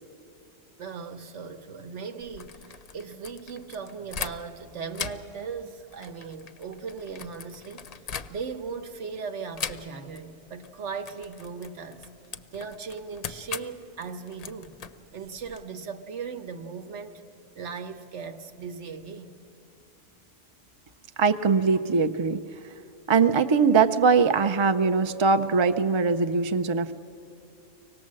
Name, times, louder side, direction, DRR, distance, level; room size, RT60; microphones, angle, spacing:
voice 1, 0.8-7.9 8.3-12.1 12.5-14.8 15.1-17.2 17.5-19.4, right 5 dB, 85° right, 1.3 m, -38 dB
sound 1, 2.2-4.6 4.9-8.7 9.5-10.2 10.5-10.7 11.0-15.6, left 6 dB, 45° left, 0.5 m, -39 dB
voice 2, 21.2-22.4 23.1-26.9, right 5 dB, 45° right, 0.3 m, -21 dB
25.0 x 18.5 x 7.6 m
omnidirectional pair, 1.2 m